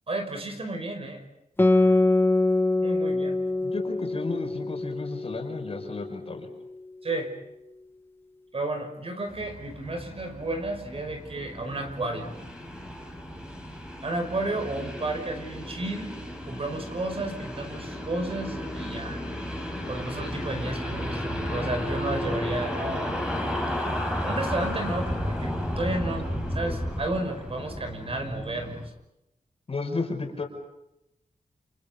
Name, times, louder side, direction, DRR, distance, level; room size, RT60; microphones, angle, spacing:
voice 1, 0.1-1.2 2.8-3.4 7.0-7.3 8.5-12.3 14.0-16.1 16.4-19.2 19.9-23.2 24.2-26.3 26.5-28.9, right 2 dB, 40° right, 5 dB, 5.6 m, -32 dB
Guitar, 1.6-6.5, left 2 dB, 15° left, 1.6 m, -24 dB
voice 2, 3.6-6.5 29.7-30.4, left 3 dB, 45° left, 4 dB, 5.4 m, -33 dB
sound 1, 9.3-28.9, equal, 5° right, 5.9 m, -33 dB
30.0 x 30.0 x 5.3 m, 0.88 s
wide cardioid pair, 170°, 15 cm